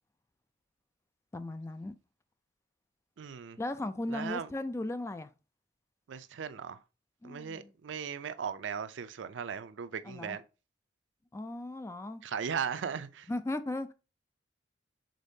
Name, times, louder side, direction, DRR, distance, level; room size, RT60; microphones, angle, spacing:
voice 1, 1.3-2.0 3.6-5.3 7.2-7.7 10.1-10.4 11.3-12.2 13.3-13.9, left 2 dB, 15° left, 0.3 m, -37 dB
voice 2, 3.2-3.6 4.1-4.5 6.1-6.8 7.2-10.4 12.2-13.3, right 7 dB, 75° right, 0.4 m, -37 dB
5.1 x 3.7 x 2.7 m
head